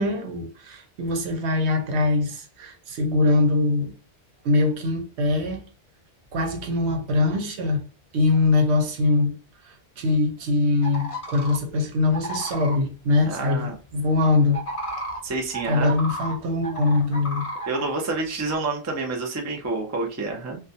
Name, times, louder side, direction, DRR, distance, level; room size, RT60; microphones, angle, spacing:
voice 1, 0.0-3.9 4.4-5.6 6.3-7.8 8.1-9.3 9.6-14.6 15.7-17.4, left 2 dB, 85° right, 0.9 m, -22 dB
sound 1, 10.8-11.6 12.1-12.8 14.5-16.4 16.6-18.0 18.5-18.6, right 1 dB, 35° left, 0.7 m, -32 dB
voice 2, 13.2-13.7 15.2-15.9 17.7-20.6, right 3 dB, 25° right, 0.3 m, -28 dB
2.3 x 2.1 x 2.6 m
omnidirectional pair, 1.1 m